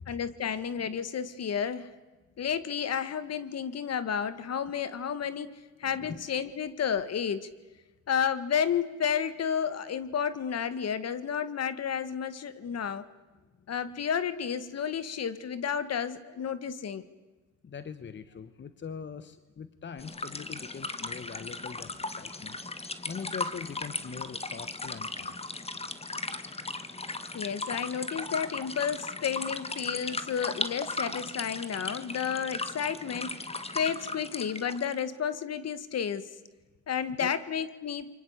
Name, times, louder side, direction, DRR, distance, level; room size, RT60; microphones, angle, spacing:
voice 1, 0.1-1.9 2.4-7.5 8.1-13.1 13.7-17.0 27.3-33.4 33.8-36.3 36.9-38.1, left 7 dB, 55° left, 14 dB, 1.8 m, -31 dB
voice 2, 17.6-25.4 37.1-37.3, left 6 dB, 40° left, 13 dB, 1.2 m, -42 dB
sound 1, 20.0-35.0, left 3 dB, 20° left, 1.8 m, -37 dB
27.5 x 24.0 x 8.3 m, 1.2 s
cardioid pair, 90°, 30 cm